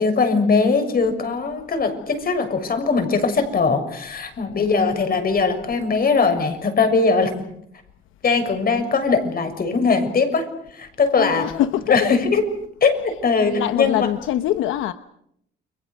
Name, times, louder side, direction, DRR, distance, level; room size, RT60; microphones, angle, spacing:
voice 1, 0.0-7.3 8.2-10.5 10.7-11.5 11.8-12.5 12.8-13.0 13.2-14.1, left 4 dB, 50° left, 7 dB, 6.7 m, -20 dB
voice 2, 11.2-11.8 13.5-14.9, left 12 dB, 90° left, 11 dB, 0.9 m, -23 dB
30.0 x 23.5 x 6.5 m, 0.74 s
cardioid pair, 90°, 20 cm